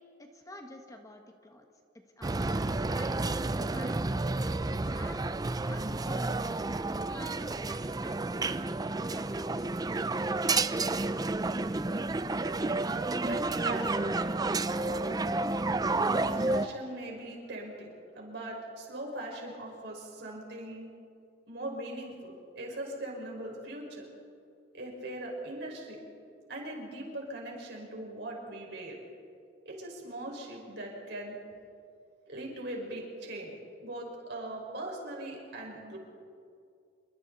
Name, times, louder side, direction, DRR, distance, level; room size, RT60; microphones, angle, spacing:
voice 1, 0.0-1.7 1.9-5.2 5.6-6.4 6.7-9.7, left 1 dB, 20° left, 3 dB, 1.5 m, -50 dB
sound 1, 2.2-16.7, right 2 dB, 20° right, 0.5 m, -30 dB
voice 2, 12.6-12.9 13.3-14.3 14.7-15.2 16.1-20.9 21.5-24.1 24.7-26.0 26.5-29.0 29.6-31.4 32.3-33.5 33.8-36.0, right 1 dB, 65° right, -1 dB, 5.4 m, -40 dB
27.0 x 23.5 x 4.2 m, 2.4 s
head